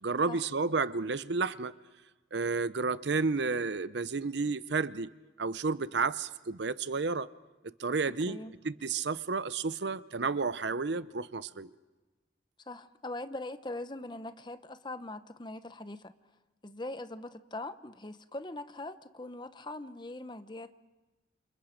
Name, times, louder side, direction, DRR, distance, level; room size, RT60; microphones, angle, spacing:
voice 1, 0.0-1.7 2.3-5.1 5.4-7.3 7.8-8.4 8.6-11.7, right 4 dB, 65° right, 0.7 m, -31 dB
voice 2, 8.0-8.5 12.7-16.1 16.6-20.8, left 2 dB, 25° left, 0.9 m, -41 dB
28.5 x 28.0 x 5.1 m
head